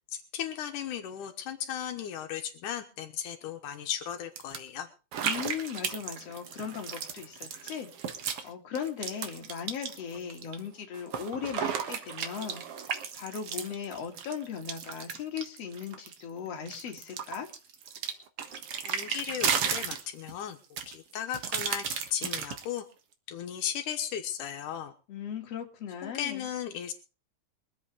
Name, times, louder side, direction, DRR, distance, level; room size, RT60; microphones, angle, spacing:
voice 1, 0.1-4.9 18.9-20.6 20.9-22.8 23.3-24.9 26.0-26.9, left 9 dB, 85° left, 6 dB, 2.7 m, -36 dB
sound 1, 4.4-4.6 5.1-8.5 8.7-10.6 10.9-16.2 16.7-20.4 20.8-22.8, right 7 dB, 55° right, 2.1 m, -34 dB
voice 2, 5.2-7.9 8.4-17.5 25.1-26.5, left 7 dB, 55° left, 3 dB, 2.9 m, -38 dB
23.0 x 8.3 x 4.8 m, 0.34 s
omnidirectional pair, 3.5 m